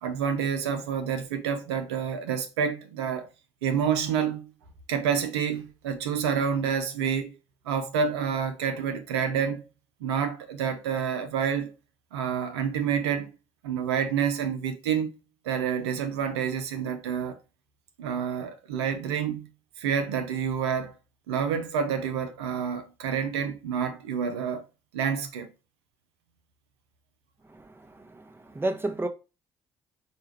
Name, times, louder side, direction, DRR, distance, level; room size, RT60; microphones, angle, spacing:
voice 1, 0.0-3.3 3.6-4.5 4.9-7.3 7.7-9.6 10.0-11.7 12.1-13.3 13.6-15.1 15.4-17.4 18.0-19.5 19.8-20.9 21.3-24.6 24.9-25.5, right 7 dB, 80° right, 0.5 m, -28 dB
voice 2, 27.5-29.1, right 2 dB, 15° right, 0.8 m, -32 dB
4.6 x 2.3 x 3.1 m
hypercardioid pair, 45°, 14 cm